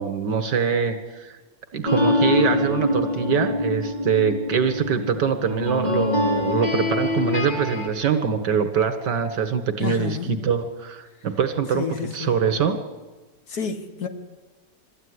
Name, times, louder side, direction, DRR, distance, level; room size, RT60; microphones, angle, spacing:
voice 1, 0.0-1.3 1.7-12.8, right 6 dB, 75° right, 9 dB, 2.3 m, -24 dB
sound 1, 1.9-7.9, left 2 dB, 25° left, 3.0 m, -24 dB
voice 2, 9.8-10.3 11.7-12.4 13.5-14.1, left 6 dB, 60° left, 6 dB, 2.1 m, -30 dB
21.5 x 14.0 x 9.8 m, 1.3 s
omnidirectional pair, 1.8 m